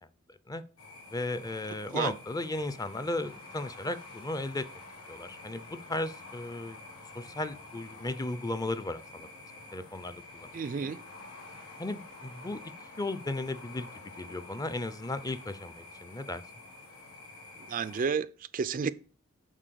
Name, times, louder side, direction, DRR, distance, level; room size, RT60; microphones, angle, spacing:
sound 1, 0.8-18.1, left 2 dB, 85° left, 3.3 m, -49 dB
voice 1, 1.1-4.7 5.1-5.6 5.9-6.8 7.1-9.3 9.7-10.5 10.8-10.9 11.8-12.6 13.0-13.9 14.2-16.4, left 2 dB, 15° left, 0.5 m, -35 dB
voice 2, 10.5-11.0 17.7-18.9, right 6 dB, 40° right, 0.4 m, -31 dB
7.4 x 4.5 x 6.8 m
head